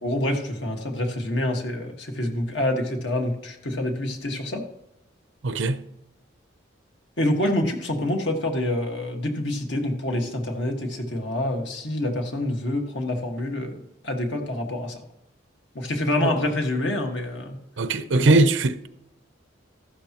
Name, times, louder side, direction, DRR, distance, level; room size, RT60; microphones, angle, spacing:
voice 1, 0.0-4.6 7.2-15.0 15.7-17.6 18.1-18.4, left 1 dB, 65° left, 1.7 m, -27 dB
voice 2, 5.4-5.8 16.2-16.3 17.8-18.9, right 2 dB, 75° right, 0.7 m, -20 dB
14.5 x 12.0 x 3.0 m
head